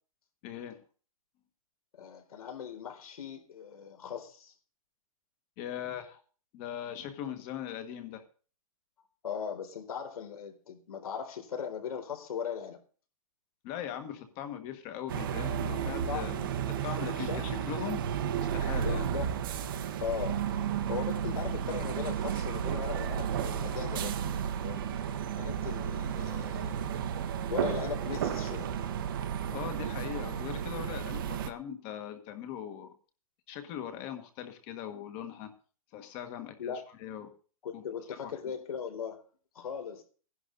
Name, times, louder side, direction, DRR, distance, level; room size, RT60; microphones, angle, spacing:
voice 1, 0.4-0.8 5.6-6.2 6.5-8.2 13.6-16.4 16.8-18.0 18.5-19.1 29.5-32.9 33.5-35.5 35.9-37.3 37.7-37.8 38.2-38.4, left 10 dB, 20° left, 1.5 m, -40 dB
voice 2, 2.0-4.5 9.2-12.8 16.1-16.5 17.2-17.7 18.8-20.4 20.9-24.9 25.4-27.1 27.5-28.7 36.6-36.8 37.6-39.2 39.5-40.0, left 7 dB, 75° left, 4.0 m, -39 dB
sound 1, 15.1-31.5, right 8 dB, 35° right, 1.1 m, -33 dB
16.5 x 11.0 x 4.0 m
hypercardioid pair, 180°, 19 cm